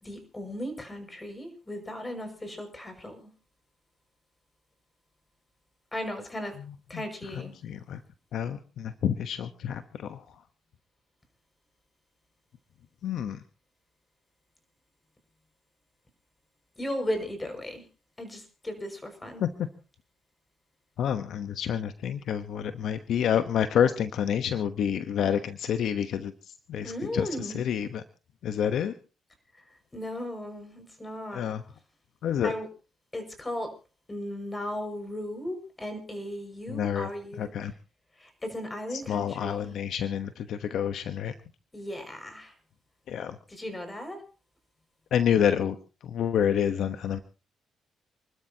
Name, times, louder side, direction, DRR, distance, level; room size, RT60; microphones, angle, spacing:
voice 1, 0.0-3.3 5.9-6.5 6.9-7.5 16.8-17.8 18.2-19.4 26.8-27.7 29.9-31.5 32.4-32.7 33.1-33.7 34.1-37.7 38.2-39.8 41.7-42.5 43.5-44.2, left 1 dB, 20° left, 7 dB, 6.0 m, -36 dB
voice 2, 7.6-8.0 8.3-10.2 13.0-13.4 19.4-19.5 21.0-26.3 26.7-28.0 28.4-28.9 31.3-31.6 32.2-32.5 36.7-37.1 37.4-37.7 39.1-41.3 43.1-43.3 45.1-45.7 46.1-47.2, left 9 dB, 70° left, 9 dB, 1.1 m, -28 dB
28.5 x 12.5 x 2.9 m, 0.33 s
cardioid pair, 90°, 0 cm